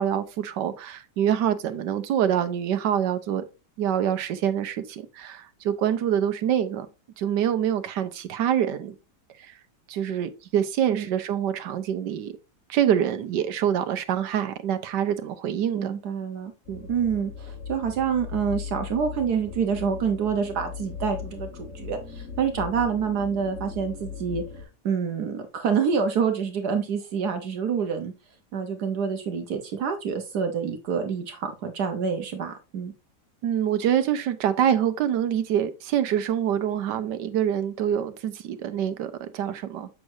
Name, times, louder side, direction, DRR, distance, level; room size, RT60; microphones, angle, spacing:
voice 1, 0.0-3.4 3.8-6.9 7.2-8.9 9.4-9.5 9.9-12.3 12.7-16.0 16.7-16.9 33.4-39.9, right 9 dB, 85° right, 1.4 m, -25 dB
voice 2, 15.7-16.5 16.9-24.4 24.8-28.1 28.5-32.9, right 6 dB, 70° right, 1.4 m, -27 dB
sound 1, 16.7-24.6, left 6 dB, 40° left, 1.7 m, -38 dB
7.5 x 6.3 x 2.7 m
omnidirectional pair, 1.8 m